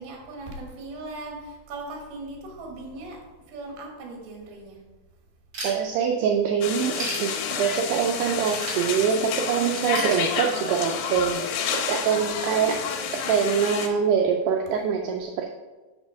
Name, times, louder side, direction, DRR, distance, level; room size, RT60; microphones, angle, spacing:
voice 1, 0.0-4.8, right 2 dB, 65° right, 1 dB, 3.0 m, -39 dB
Ratchet pawl / Tools, 5.5-6.3 6.7-7.9 8.4-9.4 9.9-10.9, right 1 dB, 30° right, 2.6 m, -35 dB
voice 2, 5.6-12.8 13.1-15.5, right 7 dB, 90° right, 2 dB, 2.3 m, -24 dB
sound 1, 6.6-13.9, left 7 dB, 80° left, 2.9 m, -30 dB
6.3 x 5.4 x 5.0 m, 1.2 s
omnidirectional pair, 5.3 m